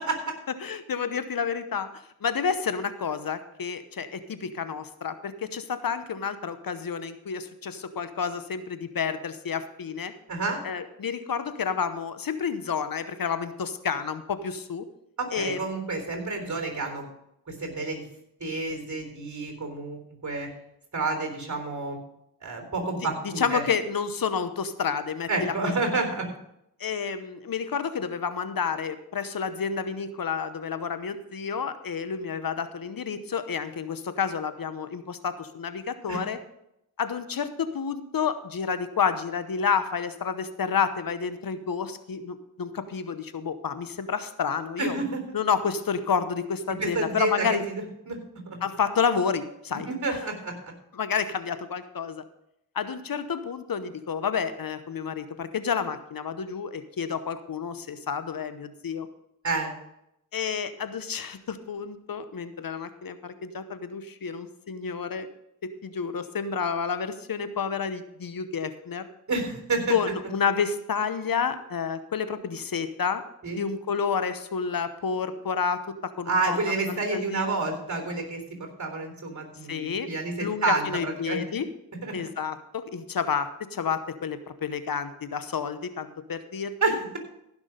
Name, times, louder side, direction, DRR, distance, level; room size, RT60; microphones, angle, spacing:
voice 1, 0.6-1.9 2.2-10.1 10.6-14.9 15.3-15.6 23.4-25.7 26.8-36.4 37.0-45.0 45.3-47.6 48.6-49.9 50.9-52.2 52.7-59.1 60.3-65.3 65.6-69.1 69.9-73.2 73.6-76.6 76.9-77.5 79.7-80.1 80.4-81.7 82.1-87.0, left 6 dB, 70° left, 12 dB, 1.0 m, -30 dB
voice 2, 10.3-10.6 15.2-17.1 17.5-18.1 18.4-20.5 20.9-22.0 22.4-23.6 25.3-26.3 36.1-36.2 44.8-45.2 46.8-47.7 48.1-48.2 48.5-48.6 49.8-50.7 59.4-59.7 69.3-70.0 73.4-73.6 76.3-81.4 82.0-82.1 86.8-87.2, right 3 dB, 50° right, 4 dB, 3.9 m, -29 dB
15.5 x 6.1 x 5.2 m, 0.80 s
cardioid pair, 45°, 37 cm